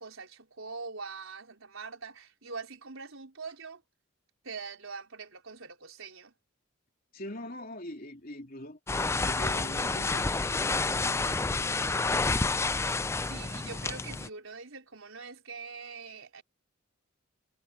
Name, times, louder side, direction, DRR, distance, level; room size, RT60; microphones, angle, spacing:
voice 1, 0.0-3.8 4.4-6.3 13.2-16.4, right 4 dB, 70° right, 4.4 m, -43 dB
voice 2, 7.1-8.8 9.2-12.7, left 1 dB, 45° left, 3.3 m, -43 dB
sound 1, 8.9-14.3, left 3 dB, 15° left, 0.3 m, -29 dB
head